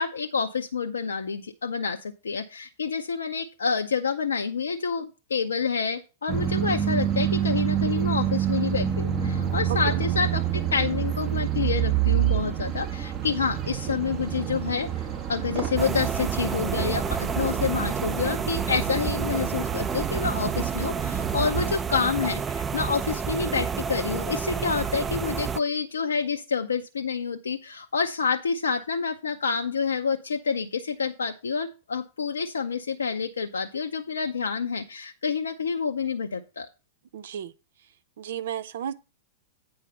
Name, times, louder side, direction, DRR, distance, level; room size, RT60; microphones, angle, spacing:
voice 1, 0.0-14.9 15.3-36.7, left 5 dB, 80° left, 0.6 m, -28 dB
sound 1, 6.3-21.7, right 10 dB, 35° right, 1.4 m, -28 dB
sound 2, 15.8-25.6, right 6 dB, 20° right, 0.4 m, -30 dB
voice 2, 37.1-37.5 38.2-39.0, right 9 dB, 65° right, 0.7 m, -33 dB
8.8 x 4.8 x 5.4 m
hypercardioid pair, 105°, 0 cm